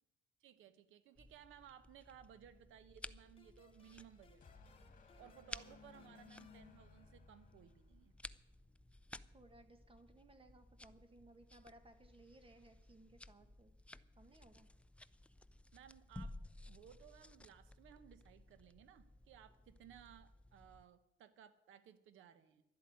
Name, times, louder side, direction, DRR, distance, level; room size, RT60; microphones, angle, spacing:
voice 1, 0.4-4.5 5.2-8.1 15.7-16.4 16.7-22.6, right 10 dB, 85° right, 13 dB, 1.1 m, -60 dB
sound 1, 1.2-20.9, left 1 dB, 5° left, 0.5 m, -57 dB
sound 2, 3.4-7.7, left 5 dB, 30° left, 1.8 m, -71 dB
sound 3, 3.7-8.3, left 6 dB, 45° left, 2.2 m, -63 dB
voice 2, 9.3-13.7 14.2-14.7, right 2 dB, 25° right, 8 dB, 1.8 m, -63 dB
12.0 x 8.0 x 9.5 m, 0.89 s
cardioid pair, 90°, 20 cm